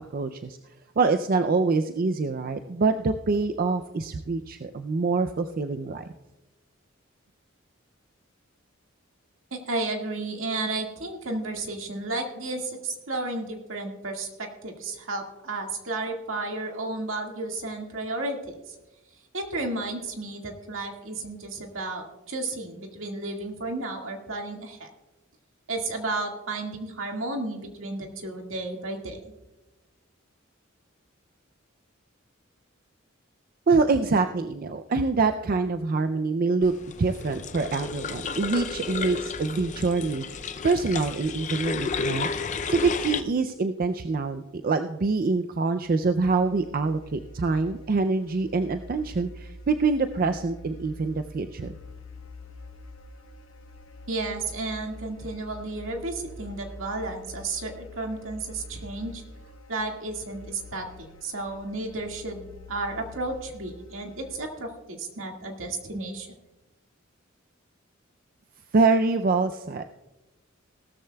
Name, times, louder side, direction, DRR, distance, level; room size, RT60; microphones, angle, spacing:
voice 1, 0.1-0.6 1.0-6.1 33.7-36.7 37.0-51.7 68.7-69.8, right 4 dB, 45° right, 8 dB, 0.4 m, -25 dB
voice 2, 9.5-18.7 19.3-24.9 25.7-29.3 54.1-59.2 59.7-66.3, right 2 dB, 75° right, 2 dB, 1.9 m, -33 dB
sound 1, 36.6-43.2, left 5 dB, 35° left, 0.5 m, -32 dB
sound 2, 46.2-64.4, equal, 80° left, 0.8 m, -46 dB
17.5 x 13.0 x 2.3 m, 1.0 s
head